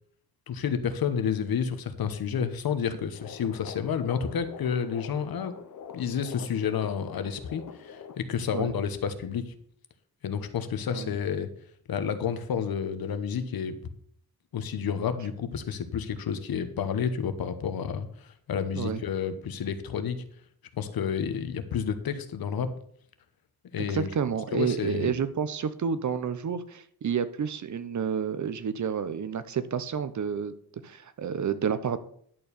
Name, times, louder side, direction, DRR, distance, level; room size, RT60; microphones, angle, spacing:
voice 1, 0.5-5.5 5.9-9.5 10.2-11.5 11.9-13.8 14.5-20.2 20.7-22.7 23.7-24.1 24.5-25.1, left 7 dB, 70° left, 10 dB, 1.1 m, -30 dB
sound 1, 3.1-8.2, left 7 dB, 55° left, 0.9 m, -44 dB
voice 2, 23.8-30.5 30.8-32.0, right 7 dB, 50° right, 13 dB, 0.8 m, -30 dB
10.5 x 4.6 x 6.8 m, 0.63 s
cardioid pair, 115°, 38 cm